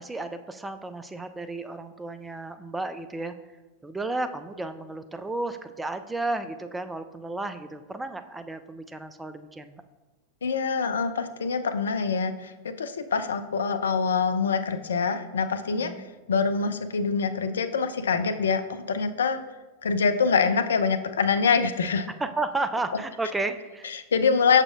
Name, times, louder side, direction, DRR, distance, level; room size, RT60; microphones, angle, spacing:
voice 1, 0.0-3.3 3.8-9.8 15.8-16.1 22.2-23.9, right 2 dB, 10° right, 9 dB, 0.3 m, -33 dB
voice 2, 10.4-15.9 16.3-19.4 19.8-22.1 23.9-24.6, left 5 dB, 65° left, 9 dB, 0.4 m, -25 dB
6.5 x 6.0 x 2.5 m, 1.2 s
figure-of-eight pair, 90°, 0 cm